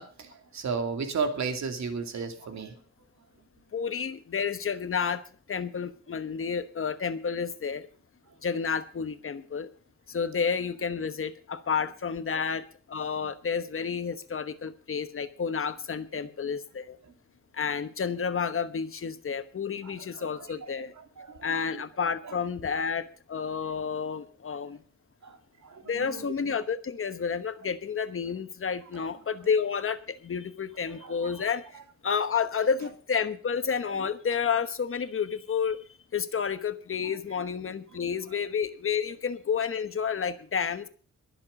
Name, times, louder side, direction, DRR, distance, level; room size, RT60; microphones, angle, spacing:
voice 1, 0.0-2.8 13.2-13.3 16.2-16.3 19.8-20.5 21.0-21.8 22.2-22.3 22.6-22.7 25.2-25.4 25.6-26.3 28.9-29.1 30.9-31.3 37.0-37.1 37.9-38.1, right 5 dB, 70° right, 6 dB, 2.6 m, -35 dB
voice 2, 3.7-5.2 5.5-7.9 8.4-9.7 10.1-17.0 17.5-20.9 21.4-24.8 25.9-31.6 32.0-35.8 36.1-40.9, left 6 dB, 45° left, 12 dB, 1.1 m, -30 dB
22.5 x 7.5 x 5.3 m, 0.40 s
wide cardioid pair, 160°, 29 cm